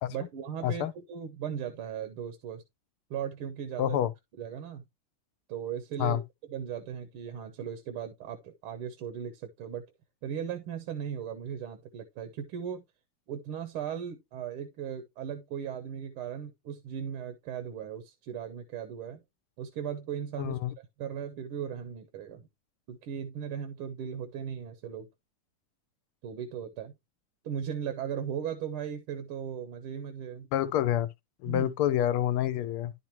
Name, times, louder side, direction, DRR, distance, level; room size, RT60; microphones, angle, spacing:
voice 1, 0.1-2.6 3.1-4.0 4.4-4.8 5.5-6.2 6.5-9.8 10.2-12.9 13.3-19.2 19.6-22.5 22.9-25.1 26.2-26.9 27.4-30.5 31.5-31.7, right 8 dB, 80° right, 1.9 m, -37 dB
voice 2, 3.8-4.1 6.0-6.2 20.4-20.7 30.5-31.1 31.4-32.9, left 12 dB, 80° left, 1.5 m, -27 dB
11.0 x 5.3 x 3.0 m
omnidirectional pair, 2.4 m